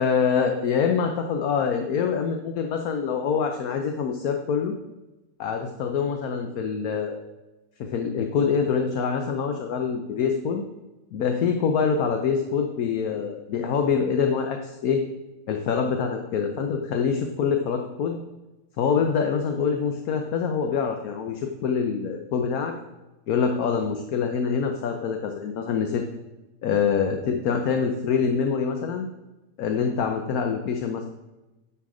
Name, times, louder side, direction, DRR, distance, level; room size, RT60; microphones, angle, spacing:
voice 1, 0.0-4.7 5.4-7.2 7.8-10.6 11.1-15.0 15.5-18.2 18.8-22.7 23.3-26.0 26.6-29.1 29.6-31.1, left 6 dB, 70° left, 4 dB, 1.2 m, -25 dB
10.0 x 5.9 x 4.9 m, 1.0 s
omnidirectional pair, 1.7 m